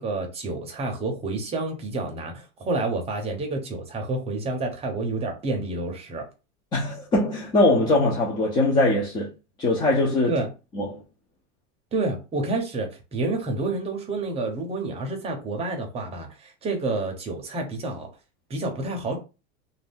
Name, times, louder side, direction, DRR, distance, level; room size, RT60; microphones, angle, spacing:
voice 1, 0.0-6.3 10.2-10.5 11.9-18.1 18.5-19.2, right 2 dB, 15° right, 0.6 m, -29 dB
voice 2, 6.7-9.3 9.6-10.4 10.7-11.0, left 2 dB, 15° left, 0.3 m, -21 dB
2.5 x 2.2 x 3.5 m
supercardioid pair, 150°, 35 cm